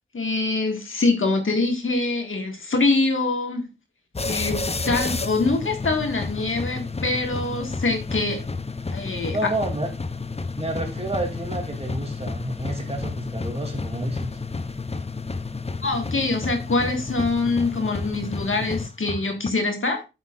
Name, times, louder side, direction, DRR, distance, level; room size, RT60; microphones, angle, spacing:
voice 1, 0.1-3.7 4.2-8.4 8.9-9.4 15.8-20.0, left 3 dB, 80° left, 1.8 m, -24 dB
sound 1, 4.1-19.5, left 3 dB, 30° left, 0.6 m, -31 dB
voice 2, 9.3-9.9 10.6-14.4, right 1 dB, 30° right, 2.9 m, -29 dB
8.4 x 8.0 x 2.5 m
wide cardioid pair, 50°, 20 cm